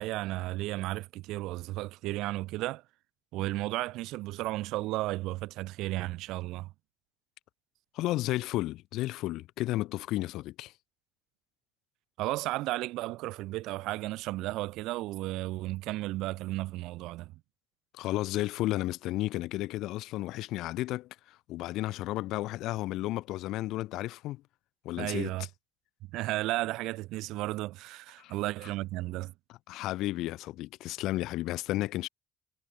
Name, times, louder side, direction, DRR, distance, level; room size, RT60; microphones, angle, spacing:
voice 1, 0.0-2.8 3.3-6.7 12.2-17.3 25.0-25.5 26.1-29.3, right 18 dB, 85° right, 0.6 m, -34 dB
voice 2, 7.9-10.7 17.9-24.4 24.8-25.3 28.2-28.3 29.7-32.1, left 17 dB, 80° left, 1.7 m, -33 dB
cardioid pair, 140°, 0 cm